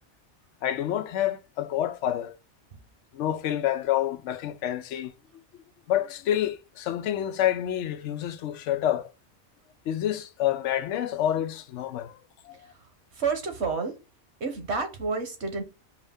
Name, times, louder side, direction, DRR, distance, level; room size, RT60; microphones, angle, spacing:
voice 1, 0.6-2.4 3.1-5.1 5.9-9.1 9.9-12.7, left 11 dB, 90° left, 0.9 m, -28 dB
voice 2, 13.2-14.0 14.4-15.6, right 4 dB, 70° right, 1.3 m, -29 dB
4.7 x 2.6 x 3.4 m
omnidirectional pair, 1.2 m